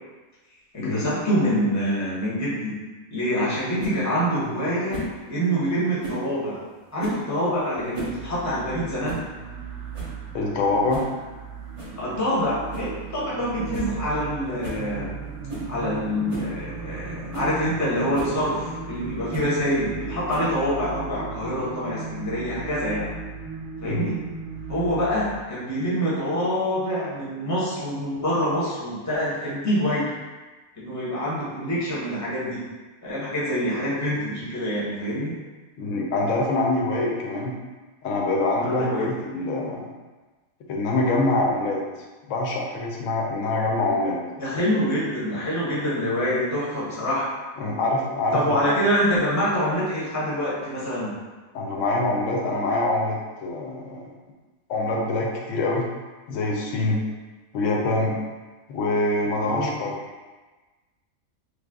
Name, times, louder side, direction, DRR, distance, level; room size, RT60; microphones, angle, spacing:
voice 1, 0.7-2.8 3.1-6.6 6.9-9.2 12.0-15.1 15.7-23.1 23.8-24.2 24.7-30.1 30.8-32.6 33.0-35.3 38.6-39.1 44.4-47.3 48.3-51.1 59.3-59.7, equal, 15° left, -8 dB, 0.6 m, -26 dB
sound 1, 3.8-4.0 4.9-5.2 6.0-6.3 7.0-7.3 7.8-8.2 8.5-8.6 9.0-9.3 9.6-9.7 9.9-10.2 10.9-11.1 11.8-12.0 12.7-13.0 13.3-13.4 13.7-13.9 14.2-14.3 14.6-14.8 15.5-15.7 16.3-16.5 17.0-17.1 17.3-17.5 18.1-18.4 19.3-19.5 20.3-20.7, right 1 dB, 30° right, 0.7 m, -35 dB
sound 2, 7.8-25.4, right 5 dB, 65° right, 0.8 m, -36 dB
voice 2, 10.3-11.1 23.8-24.1 35.8-37.5 38.0-39.9 40.7-41.8 42.3-44.2 44.5-44.9 47.6-48.6 51.5-54.1 54.7-55.9 56.3-57.0 57.5-58.2 58.7-60.0, left 2 dB, 70° left, -1 dB, 0.9 m, -25 dB
3.2 x 2.0 x 3.4 m, 1.3 s
omnidirectional pair, 1.5 m